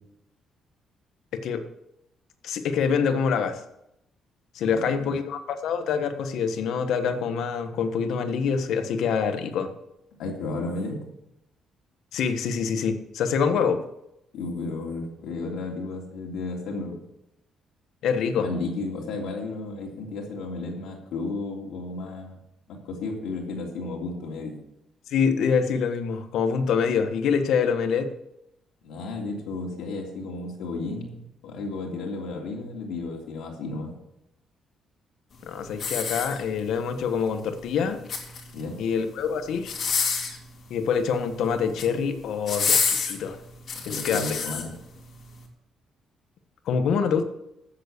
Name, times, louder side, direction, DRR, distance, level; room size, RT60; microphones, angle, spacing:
voice 1, 1.3-1.6 2.4-3.6 4.5-9.7 12.1-13.8 18.0-18.5 25.1-28.1 35.4-38.0 38.8-39.9 40.7-43.4 43.9-44.2 46.7-47.2, left 6 dB, 70° left, 8 dB, 1.3 m, -25 dB
voice 2, 4.6-5.1 10.2-11.0 14.3-17.0 18.3-22.4 22.7-24.6 28.8-33.9 38.5-38.8 43.8-44.8, left 3 dB, 90° left, -1 dB, 3.2 m, -33 dB
sound 1, 35.7-36.8 37.9-38.6 39.6-40.4 41.5-41.9 42.5-44.6 45.2-45.3, left 5 dB, 45° left, 2.5 m, -27 dB
13.5 x 7.7 x 6.7 m, 0.84 s
cardioid pair, 150°, 0 cm